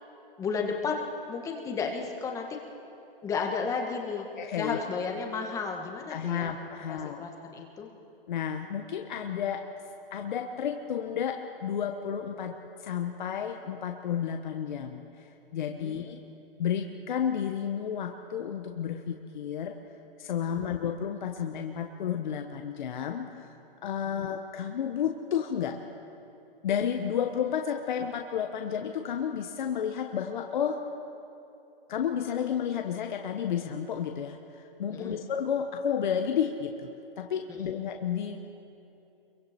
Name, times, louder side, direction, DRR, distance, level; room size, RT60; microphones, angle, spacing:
voice 1, 0.4-2.5 3.2-4.3 4.6-6.5 6.9-7.9 15.8-16.2 20.4-20.7 24.0-24.2 34.9-35.2 37.5-37.6, left 5 dB, 10° left, 2 dB, 1.4 m, -33 dB
voice 2, 4.3-4.8 6.1-7.2 8.3-9.6 10.1-12.5 12.8-16.2 16.6-19.8 20.2-23.5 23.8-25.8 26.6-30.8 31.9-36.9 37.2-38.4, left 8 dB, 55° left, 4 dB, 1.2 m, -31 dB
27.0 x 23.0 x 4.3 m, 2.9 s
hypercardioid pair, 160°, 29 cm